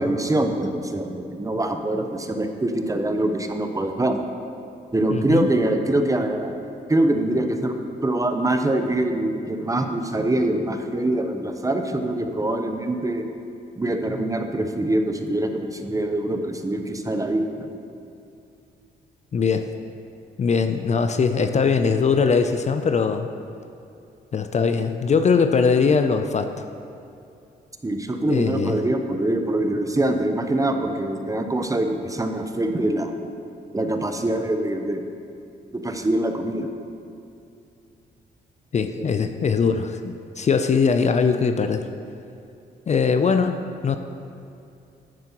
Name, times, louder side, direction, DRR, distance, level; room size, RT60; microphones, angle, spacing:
voice 1, 0.0-4.2 4.9-6.5 6.9-7.8 8.0-13.2 13.8-17.7 27.8-33.1 33.7-35.0 35.7-36.7 39.0-39.1, right 1 dB, 20° right, 5 dB, 0.7 m, -24 dB
voice 2, 5.1-5.5 19.3-19.6 20.4-23.3 24.3-26.7 28.2-28.8 38.7-41.9 42.9-43.6 43.8-44.0, left 5 dB, 40° left, 8 dB, 0.4 m, -21 dB
9.7 x 7.4 x 3.0 m, 2.6 s
supercardioid pair, 60°, 19 cm